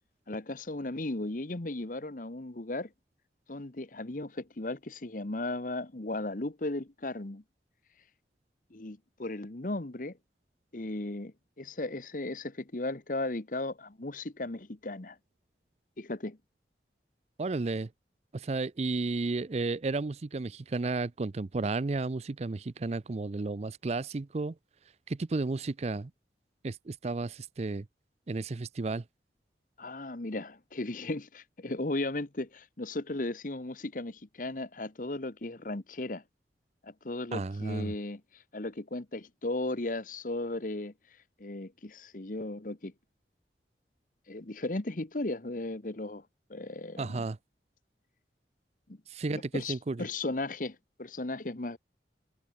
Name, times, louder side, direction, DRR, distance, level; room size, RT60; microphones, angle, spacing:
voice 1, 0.3-2.9 3.5-7.4 8.7-10.2 10.7-15.2 16.0-16.4 29.8-36.2 36.8-40.9 41.4-42.9 44.3-46.2 46.5-47.3 48.9-49.0 49.3-51.8, left 2 dB, 50° left, 1.2 m, -36 dB
voice 2, 17.4-17.9 18.3-24.5 25.1-26.1 26.6-27.9 28.3-29.0 37.3-37.9 47.0-47.4 49.1-50.1, right 3 dB, 40° right, 0.5 m, -33 dB
head